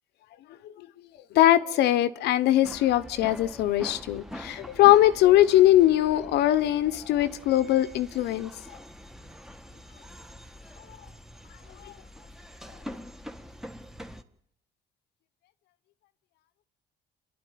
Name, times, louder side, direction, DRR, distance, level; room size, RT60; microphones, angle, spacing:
voice 1, 1.3-8.5 11.8-11.9, left 14 dB, 80° left, 1.1 m, -21 dB
sound 1, 2.6-14.2, equal, 5° right, 1.6 m, -44 dB
29.0 x 12.0 x 9.3 m
cardioid pair, 110°, 17 cm